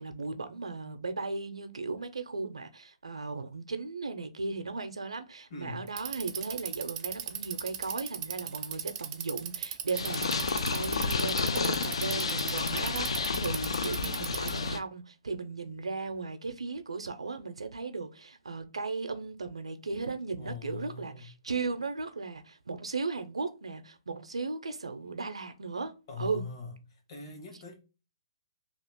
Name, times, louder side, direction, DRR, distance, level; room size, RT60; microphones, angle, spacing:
voice 1, 0.0-26.5, right 4 dB, 85° right, 0.5 m, -36 dB
voice 2, 5.5-5.9 20.4-21.3 26.1-26.7 27.1-27.7, left 4 dB, 45° left, 1.3 m, -41 dB
Bicycle, 5.9-14.7, right 10 dB, 25° right, 0.4 m, -37 dB
Purr, 9.9-14.8, left 4 dB, 75° left, 0.4 m, -31 dB
2.9 x 2.4 x 3.5 m
hypercardioid pair, 140°, 3 cm